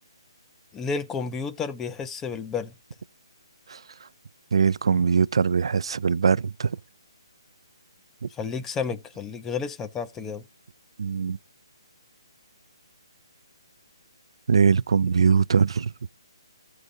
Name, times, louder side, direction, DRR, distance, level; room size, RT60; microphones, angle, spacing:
voice 1, 0.7-2.7 8.3-10.4, left 5 dB, 10° left, 0.6 m, -31 dB
voice 2, 4.5-6.8 11.0-11.4 14.5-15.9, right 6 dB, 70° right, 0.4 m, -21 dB
14.0 x 4.7 x 3.9 m
hypercardioid pair, 165°, 3 cm